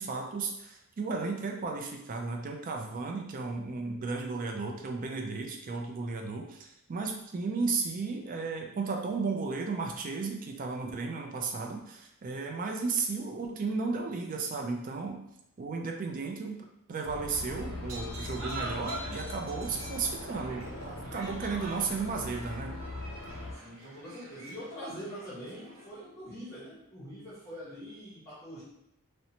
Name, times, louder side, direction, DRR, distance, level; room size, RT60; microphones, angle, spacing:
voice 1, 0.0-15.2 15.6-22.8, right 4 dB, 40° right, 2 dB, 0.4 m, -34 dB
sound 1, 17.0-23.5, left 2 dB, 80° left, 0.5 m, -41 dB
sound 2, 17.3-25.9, right 1 dB, 70° right, 0.7 m, -45 dB
voice 2, 23.5-28.6, equal, 15° left, -10 dB, 1.0 m, -44 dB
2.7 x 2.1 x 2.8 m, 0.81 s
head